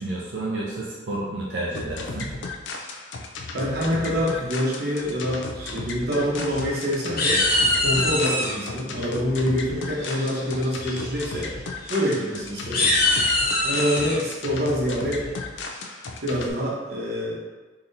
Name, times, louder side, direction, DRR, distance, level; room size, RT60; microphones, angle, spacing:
voice 1, 0.0-2.3, right 2 dB, 85° right, -5 dB, 0.6 m, -30 dB
sound 1, 1.7-16.5, left 3 dB, 70° left, 0.4 m, -35 dB
voice 2, 3.5-7.4 7.7-11.5 11.9-12.9 13.6-15.6 16.2-17.4, equal, 60° right, -4 dB, 0.9 m, -26 dB
sound 2, 6.2-6.8 7.2-8.5 10.0-10.4 10.8-11.0 11.3-11.4 11.8-12.0 12.6-14.2, left 1 dB, 55° left, 1.0 m, -23 dB
3.8 x 2.9 x 2.6 m, 1.3 s
head